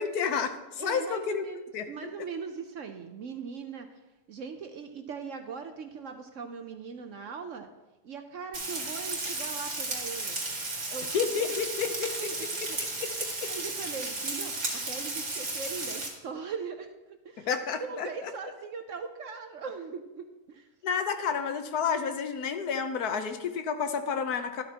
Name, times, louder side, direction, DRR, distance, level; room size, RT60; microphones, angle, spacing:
voice 1, 0.0-1.5 1.7-1.8 11.1-12.1 13.0-13.5 17.4-18.3 20.8-24.6, left 6 dB, 70° left, 8 dB, 1.3 m, -30 dB
voice 2, 0.8-3.9 4.3-7.7 8.0-10.4 10.9-11.1 11.5-11.6 11.9-14.5 14.9-17.5 17.8-20.7, right 5 dB, 60° right, 6 dB, 0.9 m, -40 dB
Frying (food), 8.5-16.1, right 2 dB, 45° right, 2.3 m, -34 dB
12.5 x 12.5 x 2.9 m, 1.1 s
omnidirectional pair, 1.7 m